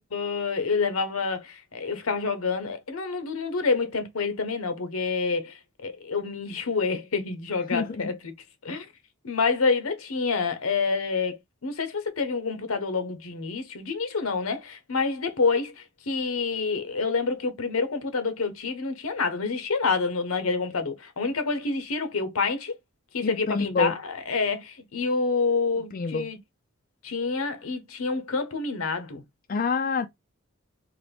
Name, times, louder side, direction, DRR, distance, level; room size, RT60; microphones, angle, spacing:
voice 1, 0.1-8.3 8.6-8.9 9.2-22.8 23.1-26.4 27.0-29.2, left 4 dB, 85° left, 0.9 m, -28 dB
voice 2, 7.7-8.1 23.2-23.9 25.9-26.3 29.5-30.1, left 4 dB, 40° left, 0.4 m, -27 dB
3.8 x 2.5 x 3.4 m
head